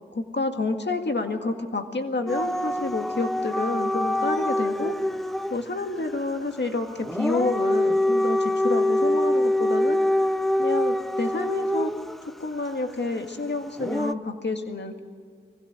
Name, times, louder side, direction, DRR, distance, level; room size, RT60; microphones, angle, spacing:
voice 1, 0.1-5.0 5.5-10.0 10.6-11.9 12.3-14.9, left 3 dB, 65° left, 5 dB, 1.9 m, -29 dB
Dog / Siren, 2.3-5.6 7.0-12.2 13.8-14.1, left 1 dB, ahead, 0.6 m, -24 dB
20.5 x 16.5 x 9.0 m, 2.1 s
wide cardioid pair, 60°, 20 cm